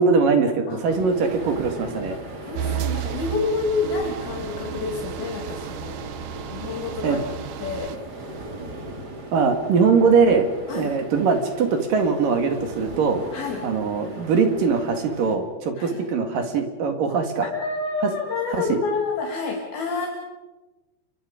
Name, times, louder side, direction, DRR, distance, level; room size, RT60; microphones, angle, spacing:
voice 1, 0.0-2.2 7.0-7.2 9.3-13.2 13.6-17.4 18.0-18.1 18.6-18.8, right 5 dB, 60° right, 5 dB, 3.4 m, -21 dB
sound 1, 0.9-15.4, right 2 dB, 30° right, 2.2 m, -38 dB
voice 2, 2.5-6.0 6.5-7.2 7.6-7.9 10.7-10.9 13.3-13.6 15.8-16.0 17.4-20.1, left 4 dB, 65° left, 0 dB, 4.2 m, -28 dB
sound 2, 2.5-8.0, right 9 dB, 75° right, 1.9 m, -33 dB
29.0 x 24.5 x 5.1 m, 1.1 s
omnidirectional pair, 4.9 m